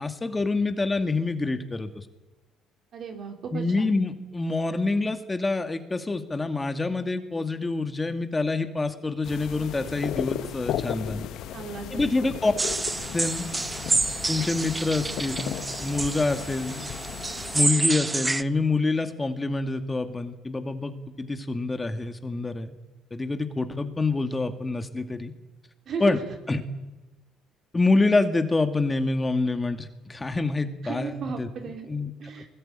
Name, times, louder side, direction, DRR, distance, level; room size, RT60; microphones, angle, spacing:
voice 1, 0.0-2.1 3.5-11.3 11.9-12.5 13.1-13.5 14.3-16.9 17.5-22.7 23.1-25.3 26.0-26.2 26.5-26.6 27.7-31.5 31.9-32.1, left 3 dB, 20° left, 7 dB, 2.4 m, -26 dB
voice 2, 2.9-3.9 11.5-12.1 25.9-26.1 30.8-31.9 32.2-32.5, right 6 dB, 55° right, 4 dB, 4.3 m, -35 dB
sound 1, 9.2-17.7, left 10 dB, 65° left, 1.4 m, -35 dB
sound 2, 12.6-18.4, right 3 dB, 20° right, 0.8 m, -28 dB
21.5 x 21.0 x 9.2 m, 1.1 s
hypercardioid pair, 60°, 0 cm